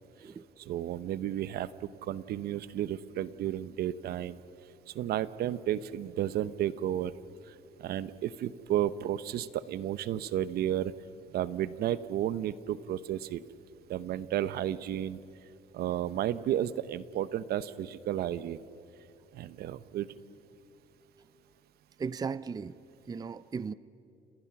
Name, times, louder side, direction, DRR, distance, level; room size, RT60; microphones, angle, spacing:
voice 1, 0.7-4.4 4.9-7.1 7.8-10.9 11.3-13.4 13.9-15.2 15.7-18.6 19.3-20.1, right 11 dB, 70° right, 15 dB, 0.9 m, -32 dB
voice 2, 22.0-22.8 23.1-23.7, right 5 dB, 25° right, 16 dB, 0.5 m, -36 dB
30.0 x 29.0 x 6.0 m, 2.8 s
cardioid pair, 110°, 17 cm